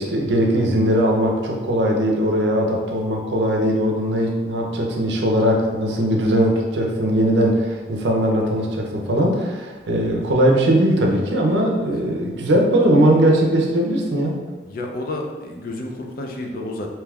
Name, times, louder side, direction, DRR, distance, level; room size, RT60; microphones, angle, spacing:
voice 1, 0.0-14.4, right 1 dB, 80° right, 0 dB, 0.6 m, -19 dB
voice 2, 14.6-16.9, left 2 dB, 55° left, 1 dB, 0.4 m, -31 dB
3.4 x 2.8 x 2.3 m, 1.3 s
head